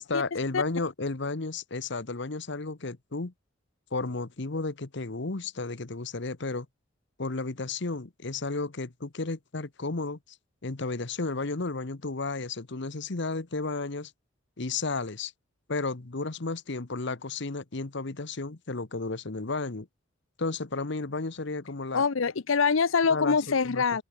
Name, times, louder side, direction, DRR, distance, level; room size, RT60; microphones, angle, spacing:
voice 1, 0.0-3.3 3.9-6.7 7.2-10.2 10.6-14.1 14.6-15.3 15.7-19.9 20.4-22.0 23.1-23.8, left 3 dB, 60° left, 1.2 m, -33 dB
voice 2, 21.9-24.0, left 5 dB, 90° left, 0.7 m, -24 dB
head